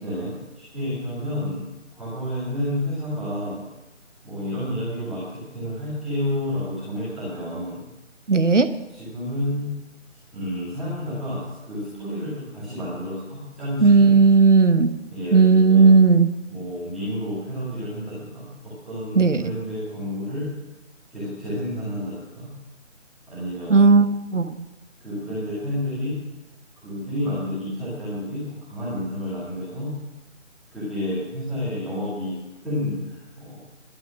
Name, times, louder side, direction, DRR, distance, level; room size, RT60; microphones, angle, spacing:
voice 1, 0.0-1.6 1.9-3.6 4.2-7.9 8.9-9.7 10.3-14.4 15.1-15.9 16.5-18.5 18.9-20.5 21.1-22.5 23.3-24.0 25.0-26.2 26.8-29.9 30.7-32.3 32.6-33.6, left 1 dB, ahead, -15 dB, 2.1 m, -30 dB
voice 2, 8.3-8.7 13.8-14.9 15.3-16.3 19.2-19.4 23.7-24.1 24.3-24.5, right 4 dB, 70° right, 11 dB, 1.1 m, -15 dB
12.0 x 11.5 x 6.2 m, 1.0 s
figure-of-eight pair, 160°, 39 cm